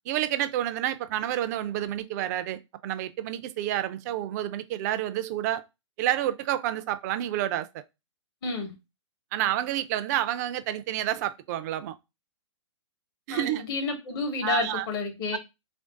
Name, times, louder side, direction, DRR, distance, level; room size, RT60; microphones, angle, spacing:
voice 1, 0.1-5.6 6.0-7.8 9.3-11.9 13.3-13.6 14.4-14.9 15.3-15.4, right 12 dB, 35° right, 0.4 m, -29 dB
voice 2, 8.4-8.7 13.3-15.4, left 3 dB, 45° left, 0.9 m, -30 dB
3.2 x 2.6 x 3.7 m
hypercardioid pair, 125°, 16 cm